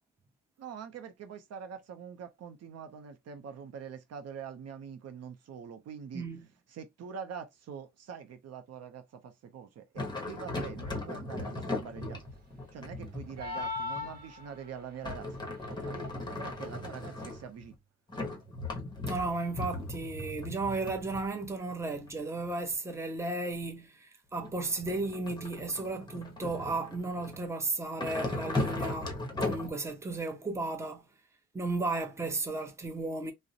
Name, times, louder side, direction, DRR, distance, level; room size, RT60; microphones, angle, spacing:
voice 1, 0.6-6.3 6.7-12.2 12.7-17.8, right 7 dB, 55° right, 0.6 m, -44 dB
voice 2, 6.1-6.5 19.1-29.2 29.4-31.1 31.5-33.3, right 3 dB, 10° right, 0.6 m, -34 dB
sound 1, 10.0-14.4 15.0-17.7 18.1-22.7 24.4-27.5 28.0-29.7, left 2 dB, 15° left, 0.9 m, -37 dB
sound 2, 13.4-14.8, left 4 dB, 30° right, 1.2 m, -37 dB
2.4 x 2.0 x 2.7 m
cardioid pair, 90°, 30 cm